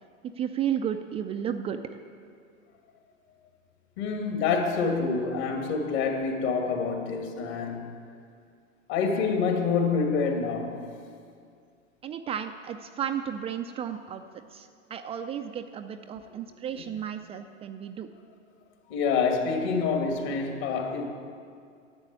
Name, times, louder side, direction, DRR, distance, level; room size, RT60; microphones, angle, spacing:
voice 1, 0.2-2.0 12.0-18.1, right 9 dB, 15° right, 7 dB, 0.3 m, -33 dB
voice 2, 4.0-7.9 8.9-10.8 16.7-16.8 18.9-21.1, left 5 dB, 55° left, 3 dB, 2.4 m, -27 dB
11.5 x 8.0 x 9.8 m, 2.3 s
hypercardioid pair, 95°, 39 cm